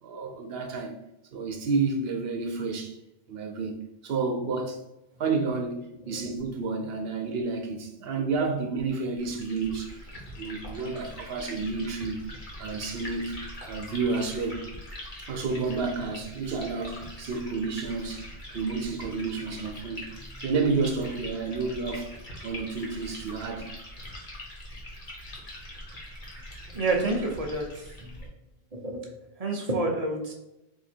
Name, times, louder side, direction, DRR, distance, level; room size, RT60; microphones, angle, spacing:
voice 1, 0.0-0.9 1.3-3.0 3.3-4.8 5.2-9.9 10.4-12.2 12.6-13.4 13.7-14.6 15.3-18.3 18.5-20.1 20.4-22.1 22.4-23.7, right 4 dB, 70° right, 1.0 m, -30 dB
Liquid, 9.2-28.3, left 1 dB, 50° left, 1.3 m, -42 dB
voice 2, 26.7-28.1 28.7-29.1 29.4-30.3, right 2 dB, 40° right, 0.8 m, -29 dB
3.7 x 2.7 x 4.3 m
omnidirectional pair, 1.1 m